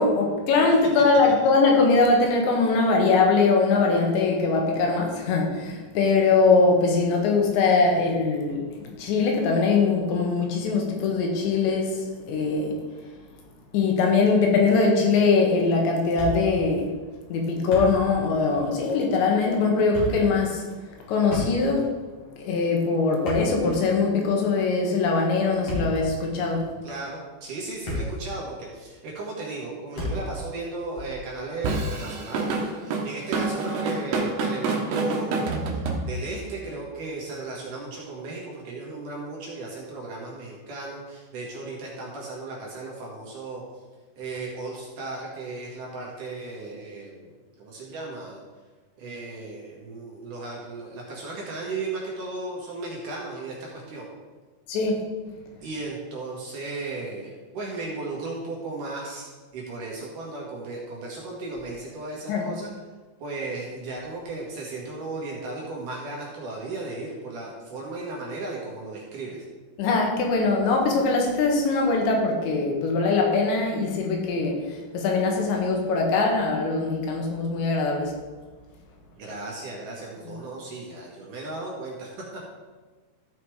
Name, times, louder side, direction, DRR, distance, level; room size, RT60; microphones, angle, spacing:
voice 1, 0.0-12.7 13.7-16.9 17.3-20.6 21.1-21.9 22.4-26.7 54.7-55.0 62.3-62.4 69.8-78.1, left 4 dB, 85° left, 1 dB, 3.8 m, -22 dB
Thump thud, 16.2-16.7 16.9-17.0 17.5-18.2 18.5-18.7 19.7-20.3 21.2-21.9 23.1-24.0 25.5-26.1 26.8-27.0 27.5-28.3 28.6-28.7 30.0-30.4, left 1 dB, 40° left, 3.4 m, -32 dB
voice 2, 26.8-43.6 44.2-48.4 49.0-54.1 55.6-62.7 63.2-69.4 79.2-82.4, right 3 dB, 55° right, -3 dB, 2.8 m, -35 dB
Drum kit / Drum, 31.6-36.5, right 3 dB, 70° right, 3.1 m, -27 dB
13.5 x 5.7 x 4.8 m, 1.3 s
omnidirectional pair, 5.0 m